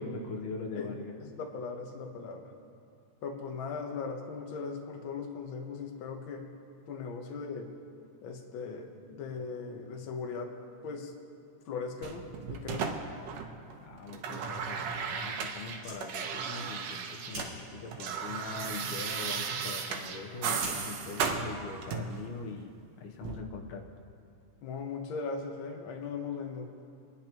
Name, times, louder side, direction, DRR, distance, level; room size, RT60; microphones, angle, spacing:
voice 1, 0.0-1.1 13.9-23.9, left 4 dB, 80° left, 1 dB, 2.4 m, -42 dB
voice 2, 1.2-2.5 3.2-6.5 6.9-7.7 8.2-10.5 10.8-11.1 11.6-13.0 24.6-26.7, left 5 dB, 60° left, 2 dB, 1.4 m, -39 dB
sound 1, 12.0-13.7 14.0-17.5 17.8-22.2 23.2-23.4, right 6 dB, 70° right, 1.9 m, -35 dB
Fire, 15.7-22.5, right 1 dB, 40° right, 4.3 m, -49 dB
27.5 x 10.5 x 3.0 m, 2.5 s
omnidirectional pair, 3.4 m